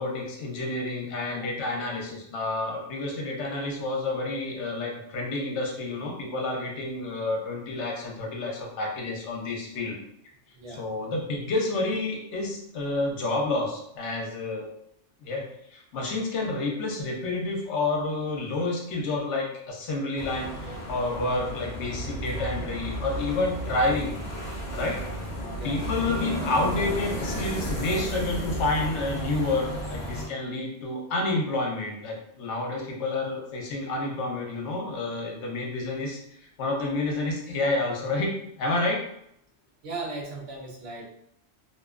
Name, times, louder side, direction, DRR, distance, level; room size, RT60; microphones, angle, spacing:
voice 1, 0.0-10.0 10.7-14.7 15.2-15.4 15.7-24.1 24.7-25.0 25.6-36.2 36.6-38.3 38.6-39.0, left 2 dB, 70° left, 0 dB, 0.9 m, -29 dB
voice 2, 10.5-10.9 20.7-21.0 25.6-25.8 39.8-41.0, right 3 dB, 80° right, -1 dB, 1.0 m, -38 dB
sound 1, 20.2-30.3, equal, 45° left, 0.7 m, -33 dB
2.7 x 2.2 x 2.3 m, 0.74 s
omnidirectional pair, 1.2 m